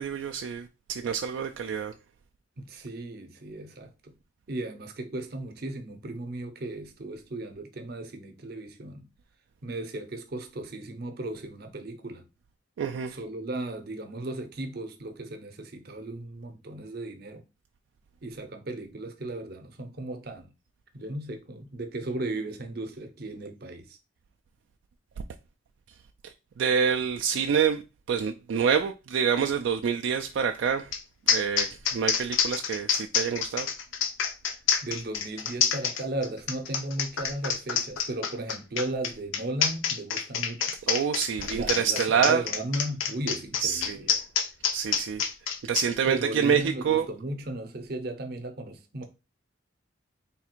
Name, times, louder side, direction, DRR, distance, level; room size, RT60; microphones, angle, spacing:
voice 1, 0.0-1.9 12.8-13.2 26.2-27.8 28.1-30.9 31.3-33.7 40.9-42.4 43.6-44.1 44.7-45.3 45.7-47.1, right 7 dB, 75° right, 0.3 m, -27 dB
voice 2, 2.6-4.2 4.5-9.1 9.6-12.3 13.1-17.4 18.2-20.5 20.9-24.0 34.5-40.7 41.4-44.0 46.0-49.0, right 1 dB, 50° right, 0.7 m, -36 dB
sound 1, 30.9-31.0 31.3-45.9, left 7 dB, 90° left, 0.6 m, -27 dB
3.5 x 2.4 x 4.4 m
head